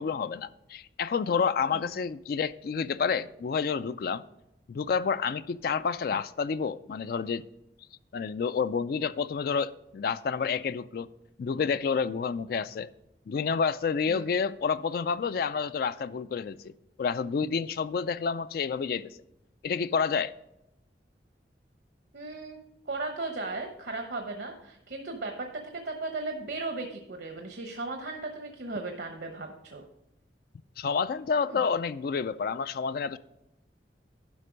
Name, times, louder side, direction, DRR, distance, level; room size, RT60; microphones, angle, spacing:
voice 1, 0.0-4.2 4.7-7.4 8.1-11.1 11.4-12.9 13.3-16.7 17.0-19.2 19.6-20.3 30.8-33.2, left 6 dB, 55° left, 0.3 m, -29 dB
voice 2, 22.1-22.6 22.9-25.5 25.7-29.8 31.4-31.6, right 3 dB, 70° right, 1.0 m, -36 dB
11.0 x 5.3 x 5.1 m
head